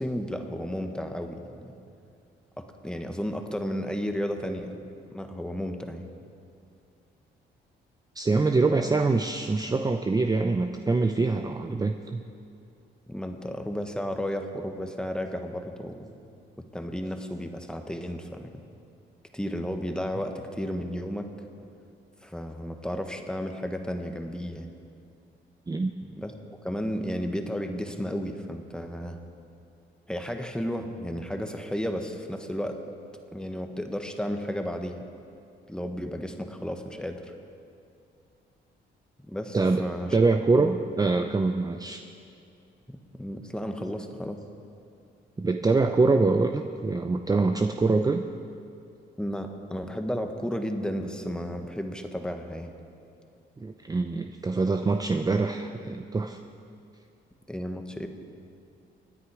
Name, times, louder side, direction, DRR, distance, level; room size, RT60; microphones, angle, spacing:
voice 1, 0.0-1.7 2.6-4.8 5.1-6.1 13.1-16.1 16.6-18.6 19.3-21.3 22.2-24.7 26.0-26.3 26.6-29.2 30.1-32.8 33.3-35.0 35.7-37.3 39.2-40.2 40.5-40.7 42.9-44.4 49.2-52.7 57.5-58.1, equal, 5° left, 5 dB, 1.4 m, -33 dB
voice 2, 8.2-12.2 25.7-25.9 39.5-39.8 40.1-42.0 45.4-48.2 53.6-56.4, right 3 dB, 20° right, 6 dB, 0.6 m, -24 dB
26.0 x 9.7 x 4.8 m, 2.6 s
cardioid pair, 90°, 20 cm